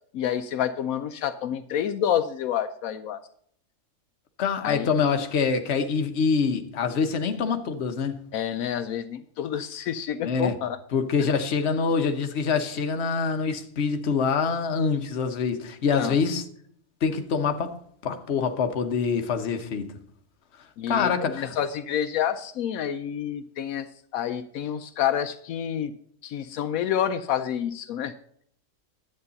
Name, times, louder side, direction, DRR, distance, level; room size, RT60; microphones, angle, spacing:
voice 1, 0.1-3.2 4.6-4.9 8.3-10.8 16.0-16.1 20.8-23.9 24.1-25.9 26.2-28.1, left 9 dB, 80° left, 1.0 m, -28 dB
voice 2, 4.4-8.2 10.2-10.6 10.9-16.4 17.0-17.8 18.0-19.9 20.9-21.5, left 5 dB, 55° left, 1.1 m, -25 dB
11.0 x 8.6 x 4.0 m
omnidirectional pair, 1.5 m